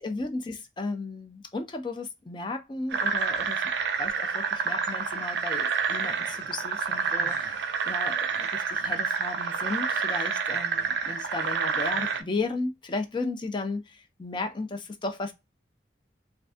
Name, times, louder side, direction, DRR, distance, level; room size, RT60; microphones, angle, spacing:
voice 1, 0.0-3.7 4.0-15.3, left 3 dB, 25° left, 0.4 m, -35 dB
sound 1, 2.9-12.2, right 5 dB, 75° right, 0.4 m, -28 dB
2.5 x 2.3 x 2.4 m
head